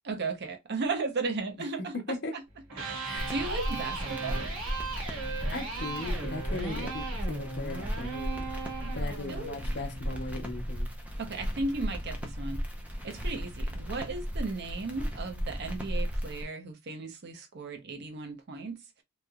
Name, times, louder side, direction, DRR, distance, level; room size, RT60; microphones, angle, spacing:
voice 1, 0.0-2.4 2.8-4.4 9.3-9.6 11.2-12.6 13.0-18.8, right 3 dB, 55° right, 0.6 m, -35 dB
voice 2, 1.9-2.4 3.0-3.4 5.5-8.5 8.9-10.9, left 3 dB, 55° left, 0.7 m, -38 dB
Electric guitar, 2.6-10.7, right 3 dB, 75° right, 1.7 m, -38 dB
sound 1, 3.2-16.4, equal, 5° right, 0.5 m, -35 dB
3.0 x 2.8 x 2.2 m
head